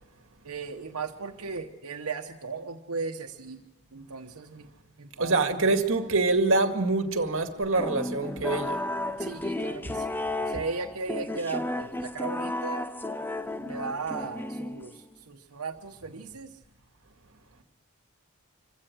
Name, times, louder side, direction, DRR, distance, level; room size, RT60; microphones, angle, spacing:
voice 1, 0.4-3.6 3.9-4.7 5.0-5.7 9.2-12.9 13.6-16.6, right 4 dB, 85° right, 1.1 m, -37 dB
voice 2, 5.2-8.8, right 3 dB, 60° right, 2.1 m, -25 dB
sound 1, 7.7-15.1, left 1 dB, 10° left, 0.6 m, -33 dB
26.0 x 16.0 x 6.3 m
head